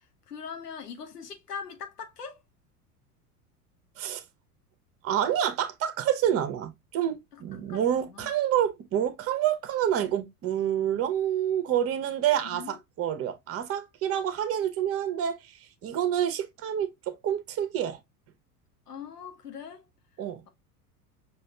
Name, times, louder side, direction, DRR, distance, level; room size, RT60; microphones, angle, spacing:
voice 1, 0.3-2.4 7.3-7.4 7.7-8.3 12.4-12.8 18.9-19.9, left 6 dB, 80° left, 0.9 m, -41 dB
voice 2, 5.0-15.4 15.8-18.0 20.2-20.4, right 10 dB, 30° right, 0.9 m, -28 dB
6.2 x 2.6 x 2.2 m
figure-of-eight pair, 80°, 46 cm